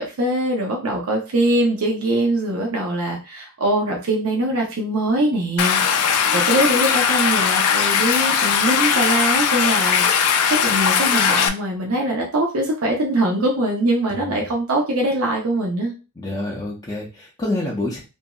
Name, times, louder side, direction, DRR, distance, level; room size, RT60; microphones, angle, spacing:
voice 1, 0.0-6.1 6.3-15.9, right 1 dB, 70° right, -1 dB, 0.7 m, -22 dB
Stream, 5.6-11.5, left 7 dB, 90° left, 0.4 m, -19 dB
voice 2, 14.1-14.4 16.2-18.0, left 2 dB, 20° left, -4 dB, 0.5 m, -27 dB
2.9 x 2.6 x 2.2 m, 0.31 s
head